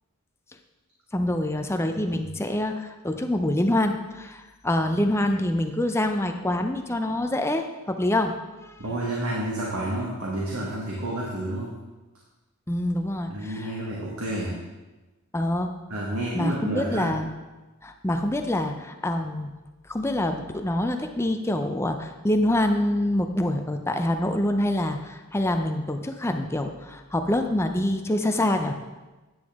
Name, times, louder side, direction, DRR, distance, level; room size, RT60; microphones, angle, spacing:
voice 1, 1.1-8.3 8.6-8.8 12.7-13.7 15.3-15.7 16.3-17.3 17.8-19.5 19.9-28.8, left 1 dB, 10° left, 5 dB, 0.5 m, -26 dB
voice 2, 8.8-11.8 13.3-14.6 15.9-17.1, right 1 dB, 85° right, -4 dB, 1.6 m, -30 dB
9.5 x 8.2 x 3.6 m, 1.1 s
head